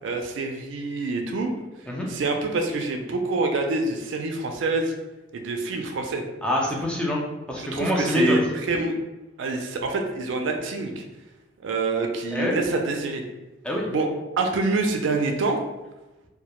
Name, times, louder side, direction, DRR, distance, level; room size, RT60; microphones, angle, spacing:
voice 1, 0.0-1.5 2.1-4.9 5.3-6.3 7.6-9.0 9.4-11.0 11.6-13.3 13.9-14.1 14.4-15.6, right 3 dB, 70° right, 4 dB, 0.3 m, -26 dB
voice 2, 6.4-8.4 12.3-12.6 13.6-13.9, left 1 dB, 5° left, -3 dB, 0.3 m, -25 dB
2.1 x 2.0 x 2.9 m, 1.1 s
head